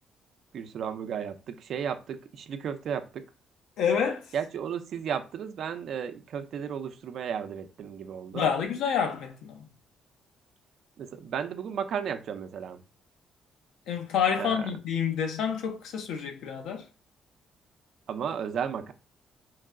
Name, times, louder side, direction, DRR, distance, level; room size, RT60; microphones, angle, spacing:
voice 1, 0.5-3.3 4.3-8.5 11.0-12.8 14.4-14.6 18.1-18.9, right 7 dB, 70° right, 0.5 m, -34 dB
voice 2, 3.8-4.3 8.3-9.7 13.9-16.9, left 7 dB, 85° left, 0.8 m, -28 dB
4.7 x 2.3 x 3.6 m
cardioid pair, 90°, 0 cm